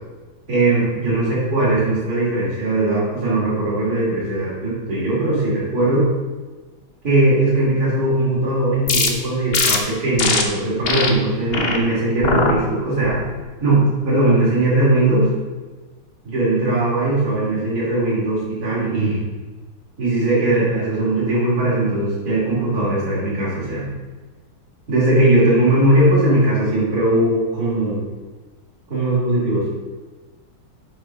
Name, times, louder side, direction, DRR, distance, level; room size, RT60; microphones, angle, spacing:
voice 1, 0.5-6.0 7.0-13.2 13.6-15.3 16.2-19.2 20.0-23.8 24.9-28.0 28.9-29.7, right 2 dB, 45° right, -8 dB, 3.3 m, -19 dB
sound 1, 8.9-9.1 9.5-9.8 10.2-10.4 10.8-11.1 11.5-11.8 12.2-12.5 13.0-13.4, left 4 dB, 65° left, 0.5 m, -20 dB
7.8 x 5.4 x 5.2 m, 1.3 s
omnidirectional pair, 2.3 m